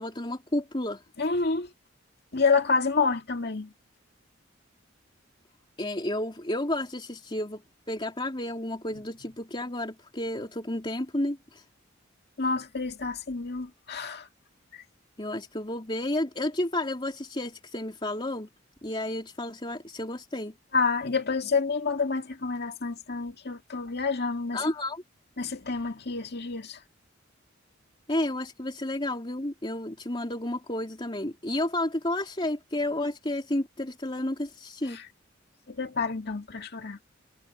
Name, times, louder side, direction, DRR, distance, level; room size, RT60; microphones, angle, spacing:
voice 1, 0.0-1.0 5.8-7.6 7.9-11.6 15.2-18.5 18.8-20.5 24.5-25.0 28.1-35.0, left 1 dB, 25° left, 3.4 m, -31 dB
voice 2, 1.2-1.7 2.3-3.7 12.4-14.3 14.7-14.8 20.7-24.6 25.4-26.8 34.9-35.0 35.7-37.0, left 4 dB, 55° left, 2.1 m, -28 dB
head